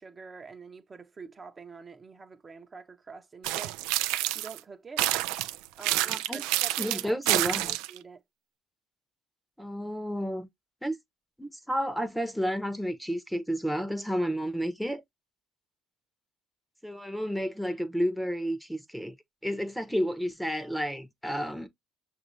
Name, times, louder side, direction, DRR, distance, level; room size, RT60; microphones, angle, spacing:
voice 1, 0.0-3.8 4.3-5.1 5.8-7.2 7.9-8.2, right 4 dB, 30° right, 0.8 m, -46 dB
sound 1, 3.4-4.6 5.0-8.0, right 16 dB, 80° right, 0.4 m, -28 dB
voice 2, 6.0-6.4 6.8-7.8 9.6-10.5 10.8-11.0 11.4-15.0 16.8-19.1 19.4-21.7, equal, ahead, 0.9 m, -31 dB
6.1 x 2.6 x 3.1 m
supercardioid pair, 70°, 0 cm